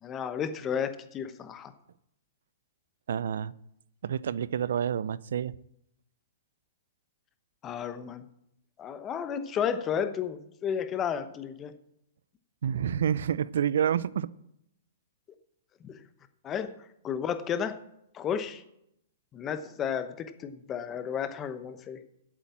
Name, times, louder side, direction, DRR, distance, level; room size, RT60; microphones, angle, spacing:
voice 1, 0.0-1.7 7.6-8.3 8.8-11.7 15.8-16.0 16.4-16.8 17.0-17.8 18.1-18.6 19.3-22.0, left 8 dB, 25° left, 11 dB, 1.0 m, -32 dB
voice 2, 3.1-3.5 4.0-5.5 12.6-14.3, right 8 dB, 75° right, 19 dB, 0.5 m, -28 dB
8.6 x 7.4 x 8.6 m, 0.77 s
hypercardioid pair, 130°, 0 cm